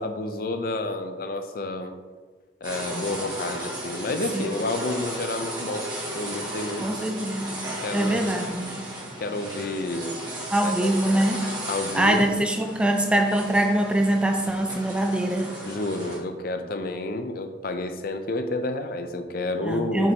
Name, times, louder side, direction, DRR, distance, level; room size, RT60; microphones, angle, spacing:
voice 1, 0.0-2.0 2.6-6.9 7.5-8.3 9.2-10.1 10.6-10.9 11.7-12.4 15.7-20.1, left 2 dB, 50° left, 7 dB, 0.5 m, -30 dB
sound 1, 2.6-16.2, right 1 dB, 25° right, 1.8 m, -35 dB
voice 2, 6.8-7.5 7.9-8.9 10.5-11.4 11.9-15.5 19.7-20.1, right 1 dB, 5° right, 4 dB, 0.4 m, -23 dB
7.6 x 5.3 x 2.8 m, 1.4 s
head